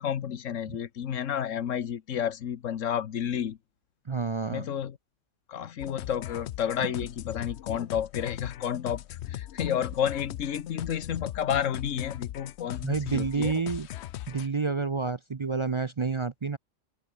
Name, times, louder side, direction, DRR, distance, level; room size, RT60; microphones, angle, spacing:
voice 1, 0.0-3.6 4.5-5.0 5.5-13.5, left 9 dB, 85° left, 1.3 m, -31 dB
voice 2, 4.1-4.7 12.8-13.9 14.3-16.6, right 4 dB, 40° right, 0.4 m, -29 dB
sound 1, 5.8-14.5, left 13 dB, 65° left, 0.8 m, -39 dB
open air
omnidirectional pair, 1.3 m